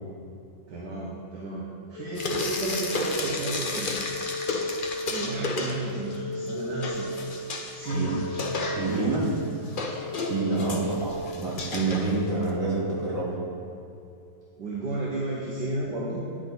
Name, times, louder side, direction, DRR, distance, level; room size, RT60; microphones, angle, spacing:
voice 1, 0.7-4.0 5.1-7.2 7.7-8.2 8.8-9.2 10.7-10.9 14.6-16.2, right 2 dB, 65° right, -5 dB, 1.8 m, -32 dB
sound 1, 2.0-13.7, left 1 dB, 80° left, 1.3 m, -36 dB
Frying (food), 2.1-6.2 6.5-12.5, left 3 dB, 50° left, 0.6 m, -33 dB
voice 2, 8.7-9.3 10.1-13.4, right 3 dB, 45° right, -7 dB, 2.9 m, -28 dB
10.0 x 8.6 x 4.0 m, 2.7 s
omnidirectional pair, 2.0 m